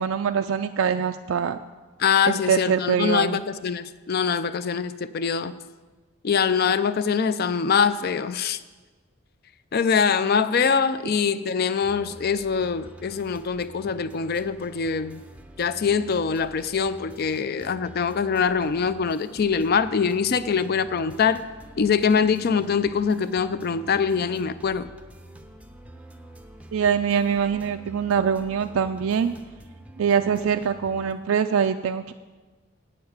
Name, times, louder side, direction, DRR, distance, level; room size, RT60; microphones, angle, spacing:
voice 1, 0.0-1.6 2.3-3.4 26.7-29.3 30.0-32.1, right 7 dB, 75° right, 7 dB, 0.4 m, -23 dB
voice 2, 2.0-5.5 6.2-8.6 9.7-15.2 15.6-21.4 21.8-24.9, left 6 dB, 45° left, 14 dB, 0.4 m, -23 dB
sound 1, 11.8-31.1, right 1 dB, 5° right, 0.5 m, -47 dB
8.7 x 6.8 x 7.9 m, 1.3 s
head